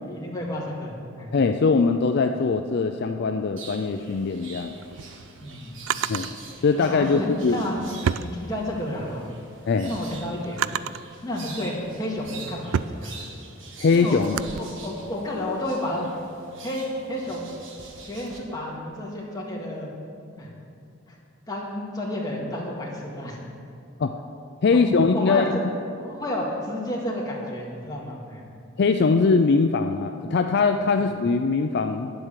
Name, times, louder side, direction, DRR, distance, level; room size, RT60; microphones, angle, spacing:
voice 1, 0.0-1.3 5.4-6.2 6.8-7.8 8.2-9.3 9.9-10.6 11.2-13.2 13.9-14.2 14.6-16.1 16.6-17.5 18.0-19.9 20.4-20.5 21.1-21.2 21.5-23.4 24.9-25.5 26.0-28.4 31.0-31.1, left 1 dB, 20° left, -3 dB, 2.0 m, -31 dB
voice 2, 1.3-4.8 6.1-6.3 6.6-7.6 9.7-9.9 13.8-14.4 24.0-24.1 24.6-25.4 28.8-32.1, left 4 dB, 55° left, 6 dB, 0.4 m, -21 dB
sound 1, 3.6-18.4, right 4 dB, 65° right, 1.5 m, -44 dB
Drawer open or close, 4.7-6.3 7.3-9.0 9.4-11.1 11.8-14.6, right 8 dB, 90° right, 0.3 m, -31 dB
10.0 x 7.8 x 7.5 m, 2.5 s
head